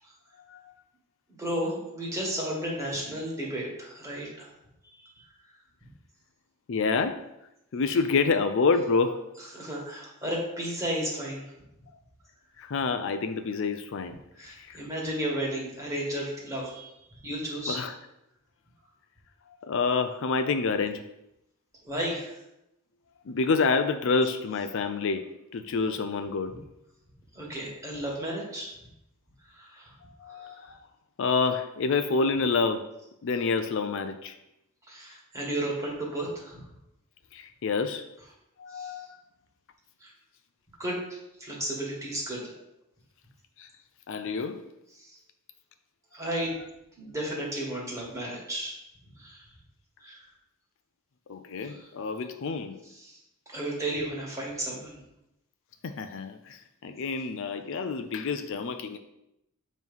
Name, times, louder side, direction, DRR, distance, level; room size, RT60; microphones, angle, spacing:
voice 1, 1.4-4.5 9.5-11.4 14.3-17.0 17.2-17.8 21.8-22.4 27.3-28.7 29.5-29.9 30.3-30.6 34.9-36.6 38.7-39.0 40.0-40.1 40.8-42.4 45.0-45.2 46.1-46.6 47.0-48.7 49.1-49.4 50.0-50.2 51.6-51.9 52.9-53.2 53.5-55.0, right 1 dB, 15° right, -4 dB, 1.8 m, -33 dB
voice 2, 6.7-7.1 7.7-9.2 12.6-14.2 14.5-14.8 17.7-17.9 19.6-21.0 23.3-25.2 25.5-26.5 30.2-30.8 31.2-32.8 33.2-34.4 37.3-38.0 38.6-39.1 43.6-43.7 44.1-44.6 51.3-52.8 55.8-59.0, left 4 dB, 60° left, 8 dB, 0.4 m, -28 dB
7.3 x 3.1 x 5.4 m, 0.86 s
head